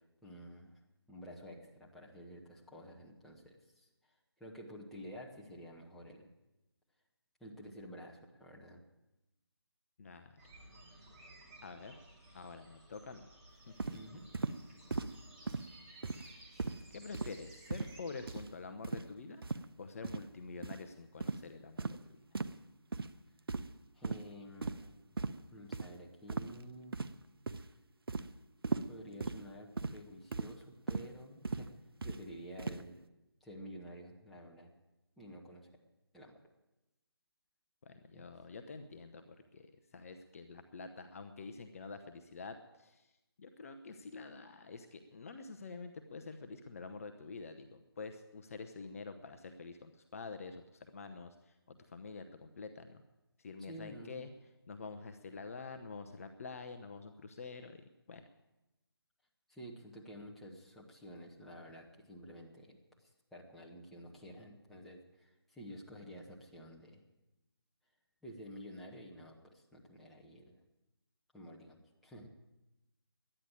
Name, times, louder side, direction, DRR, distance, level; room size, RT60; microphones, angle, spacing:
voice 1, 0.2-0.8 1.1-4.1 4.4-6.3 7.4-8.8 13.9-14.2 23.9-25.0 25.5-27.0 28.9-31.7 32.0-33.0 33.4-34.7 35.2-35.7 36.1-36.4 38.1-38.2 53.6-54.2 59.5-62.8 63.3-67.0 68.2-70.6 71.3-72.3, equal, ahead, -4 dB, 1.3 m, -51 dB
voice 2, 10.0-10.4 11.6-12.0 12.3-13.3 13.9-14.2 16.5-19.4 19.8-22.0 37.8-43.1 43.4-50.6 50.9-53.0 53.4-54.3 54.7-58.2, left 4 dB, 35° left, 8 dB, 0.8 m, -47 dB
sound 1, 10.4-18.4, right 1 dB, 20° right, 2.8 m, -57 dB
sound 2, 13.8-14.0 14.3-14.6 14.9-15.1 15.5-15.7 16.0-16.3 16.6-16.8 17.1-17.4 17.7-18.0 18.3-18.5 18.8-19.1 19.4-19.6 20.0-20.2 20.6-20.8 21.2-21.4 21.8-22.0 22.3-22.6 22.9-23.1 23.5-23.8 24.0-24.2 24.6-24.9 25.2-25.4 25.7-25.9 26.3-26.6 26.9-27.2 27.5-27.7 28.1-28.3 28.6-28.9 29.2-29.4 29.8-30.0 30.3-30.5 30.9-31.1 31.4-31.7 32.0-32.2 32.6-32.8, right 3 dB, 60° right, 0.8 m, -37 dB
12.0 x 10.0 x 9.0 m, 0.99 s
figure-of-eight pair, 155°, 14 cm